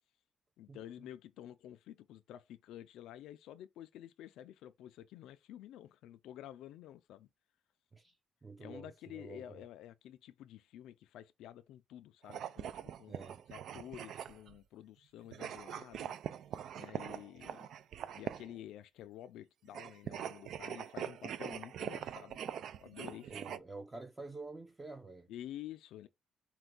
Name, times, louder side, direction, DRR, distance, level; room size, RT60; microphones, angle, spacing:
voice 1, 0.6-7.3 8.6-13.2 13.5-16.1 16.8-17.7 18.1-23.6 25.3-26.1, left 12 dB, 85° left, 0.3 m, -50 dB
voice 2, 8.4-9.6 13.1-13.4 23.3-25.3, right 3 dB, 20° right, 0.7 m, -48 dB
sound 1, 12.2-14.6 15.3-18.6 19.7-23.6, right 9 dB, 75° right, 0.3 m, -43 dB
4.4 x 2.3 x 3.8 m
cardioid pair, 90°, 0 cm